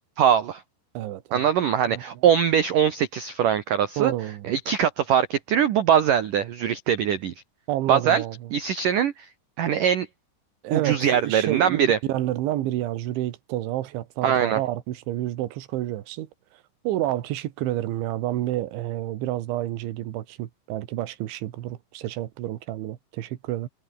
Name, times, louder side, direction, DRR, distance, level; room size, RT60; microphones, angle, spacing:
voice 1, 0.2-0.6 1.3-4.1 4.4-7.3 7.9-8.2 8.5-9.3 9.6-10.1 10.7-12.0 14.2-14.6, right 9 dB, 90° right, 1.8 m, -22 dB
voice 2, 1.0-1.5 1.9-2.0 4.0-4.5 7.7-8.4 10.6-16.3 16.9-23.7, right 14 dB, 70° right, 3.8 m, -29 dB
omnidirectional pair, 5.9 m